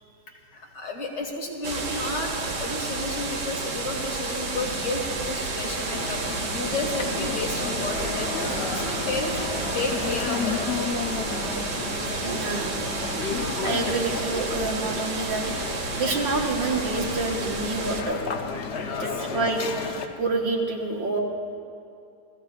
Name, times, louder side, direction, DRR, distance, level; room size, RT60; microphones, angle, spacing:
voice 1, 0.5-10.6 18.8-19.0, left 2 dB, 70° left, 0 dB, 2.7 m, -32 dB
sound 1, 1.6-18.0, right 3 dB, 65° right, 2.1 m, -31 dB
sound 2, 5.9-20.1, left 5 dB, 50° left, 0.8 m, -32 dB
voice 2, 12.2-12.7 13.6-18.2 19.0-19.7 20.2-21.2, right 3 dB, 85° right, -1 dB, 2.3 m, -28 dB
29.0 x 16.0 x 2.5 m, 2.6 s
omnidirectional pair, 2.0 m